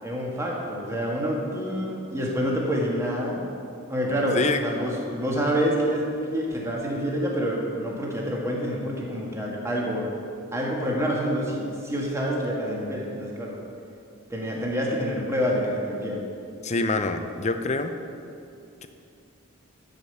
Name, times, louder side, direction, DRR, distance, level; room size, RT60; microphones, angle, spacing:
voice 1, 0.0-3.4 3.9-10.2 10.5-13.6 14.3-16.3, equal, 15° right, -2 dB, 1.5 m, -27 dB
voice 2, 16.6-18.0, left 3 dB, 30° left, 8 dB, 0.5 m, -25 dB
11.5 x 5.1 x 6.9 m, 2.5 s
head